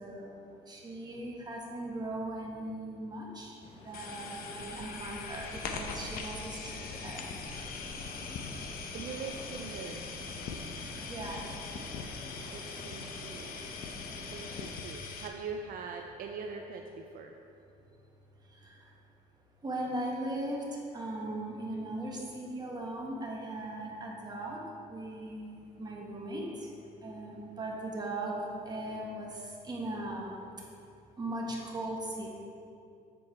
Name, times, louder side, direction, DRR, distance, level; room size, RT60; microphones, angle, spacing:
voice 1, 0.0-3.6 3.8-7.2 11.0-11.5 18.6-18.8 19.6-20.6 20.9-24.6 24.9-26.7 27.0-28.3 28.6-30.5 31.2-32.3, right 1 dB, 25° right, -2 dB, 1.4 m, -38 dB
sound 1, 3.6-14.7, left 2 dB, 30° left, 0.9 m, -48 dB
sound 2, 3.9-15.3, left 4 dB, 60° left, 0.7 m, -41 dB
voice 2, 8.1-8.5 8.9-10.1 12.5-13.6 14.2-17.3, right 5 dB, 60° right, 3 dB, 0.4 m, -42 dB
7.7 x 4.5 x 4.3 m, 2.7 s
cardioid pair, 110°, 17 cm